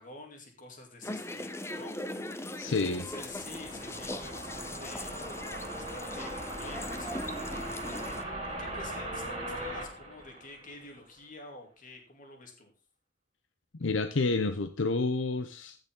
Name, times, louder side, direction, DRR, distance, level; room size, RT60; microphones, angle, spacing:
voice 1, 0.0-2.0 2.6-5.2 5.7-12.7, left 2 dB, 45° left, 3 dB, 3.0 m, -49 dB
sound 1, 1.0-8.2, left 1 dB, 15° left, 0.8 m, -40 dB
voice 2, 2.6-3.1 13.8-15.8, left 3 dB, 85° left, 9 dB, 0.8 m, -29 dB
sound 2, 2.6-11.0, right 1 dB, 30° right, 6.1 m, -39 dB
15.0 x 6.6 x 3.8 m, 0.32 s
head